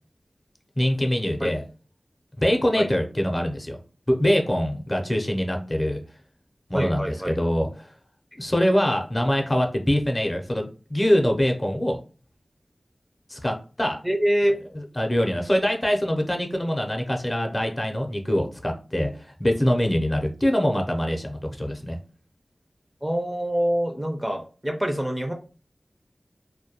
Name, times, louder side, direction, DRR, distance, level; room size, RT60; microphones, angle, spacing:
voice 1, 0.8-1.6 2.4-3.8 4.1-6.0 6.7-7.9 8.4-12.0 13.3-14.0 15.0-22.0, equal, 30° left, 2 dB, 0.6 m, -24 dB
voice 2, 6.7-7.4 14.0-14.6 23.0-25.3, equal, 10° right, 3 dB, 0.4 m, -25 dB
2.2 x 2.2 x 2.8 m, 0.36 s
cardioid pair, 40°, 0 cm